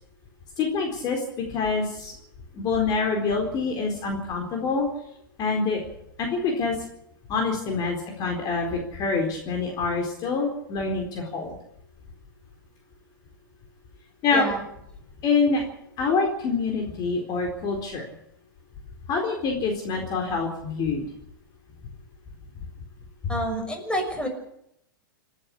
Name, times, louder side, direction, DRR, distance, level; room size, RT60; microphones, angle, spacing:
voice 1, 0.6-2.1 2.5-4.9 5.4-5.8 6.2-6.8 7.3-11.5 14.2-14.5 15.2-15.6 16.0-18.0 19.1-21.0 23.2-23.3, left 4 dB, 35° left, 2 dB, 4.2 m, -26 dB
voice 2, 23.3-24.3, equal, 10° left, 4 dB, 6.3 m, -28 dB
29.0 x 11.0 x 8.5 m, 0.78 s
hypercardioid pair, 105°, 12 cm